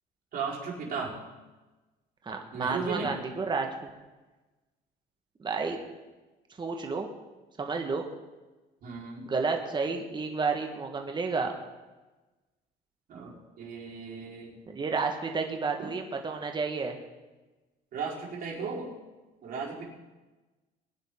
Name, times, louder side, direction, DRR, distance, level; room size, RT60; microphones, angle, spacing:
voice 1, 0.3-1.2 2.5-3.2 8.8-9.3 13.1-14.5 15.8-15.9 17.9-18.9 19.4-19.9, right 5 dB, 60° right, -4 dB, 4.8 m, -35 dB
voice 2, 2.2-3.7 5.4-5.8 6.6-7.1 7.6-8.0 9.3-11.5 14.7-17.0, right 4 dB, 25° right, 3 dB, 1.7 m, -31 dB
21.0 x 10.0 x 3.9 m, 1.2 s
cardioid pair, 110°, 17 cm